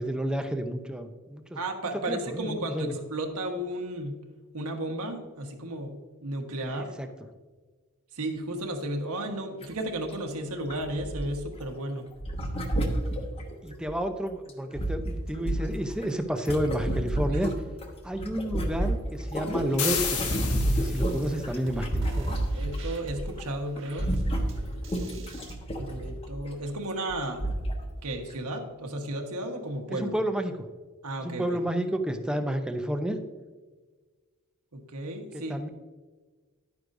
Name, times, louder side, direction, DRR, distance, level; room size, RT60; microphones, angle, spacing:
voice 1, 0.0-1.6 2.1-2.9 6.7-7.1 13.6-17.5 18.0-20.2 20.6-22.4 29.9-30.5 31.2-33.2 35.5-35.7, equal, 5° right, 6 dB, 0.6 m, -30 dB
voice 2, 1.5-4.1 4.5-7.0 8.1-12.1 17.3-17.5 22.6-24.1 25.8-27.4 28.0-30.2 31.0-31.6 34.7-35.6, right 1 dB, 90° right, 3 dB, 1.3 m, -34 dB
sound 1, 9.6-9.8 10.1-10.2 10.7-11.6 12.2-14.0 14.5-17.9 18.1-23.0 23.3-23.5 23.8-26.5 27.1-27.2 27.4-27.8 28.3-28.4, right 1 dB, 25° left, 1.1 m, -30 dB
sound 2, 19.8-21.3, left 7 dB, 90° left, 1.4 m, -31 dB
sound 3, 19.9-25.5, equal, 60° right, 1.3 m, -41 dB
11.0 x 9.5 x 2.6 m, 1.4 s
head